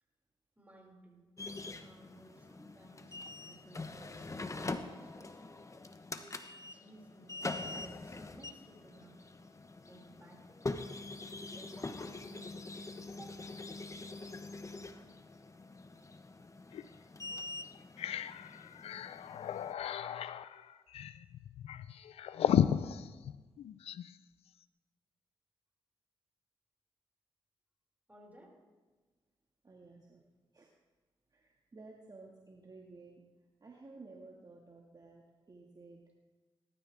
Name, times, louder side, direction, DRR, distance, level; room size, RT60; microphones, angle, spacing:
voice 1, 0.6-1.3 1.8-5.4 6.1-6.4 6.7-9.2 9.8-10.7 11.5-13.4 28.1-28.6, right 2 dB, 15° right, -2 dB, 5.9 m, -58 dB
sound 1, 1.4-19.7, left 2 dB, 30° left, 1.2 m, -44 dB
sound 2, 16.7-16.9 17.3-17.4 17.7-24.1, left 9 dB, 80° left, 0.5 m, -35 dB
voice 2, 29.6-30.2 30.5-30.7 31.3-33.3 33.6-36.1, right 3 dB, 40° right, -1 dB, 1.9 m, -54 dB
19.0 x 13.0 x 3.6 m, 1.3 s
supercardioid pair, 50°, 10 cm